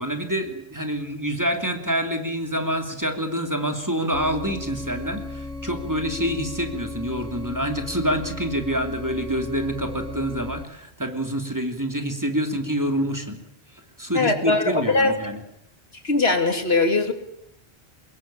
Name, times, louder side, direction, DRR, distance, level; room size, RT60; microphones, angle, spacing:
voice 1, 0.0-13.4 13.7-15.4, equal, 15° right, 5 dB, 2.9 m, -27 dB
sound 1, 4.1-10.6, left 2 dB, 5° left, 2.3 m, -35 dB
voice 2, 14.1-15.1 16.0-17.1, left 3 dB, 70° left, 7 dB, 2.8 m, -20 dB
24.0 x 22.0 x 8.8 m, 0.77 s
omnidirectional pair, 1.1 m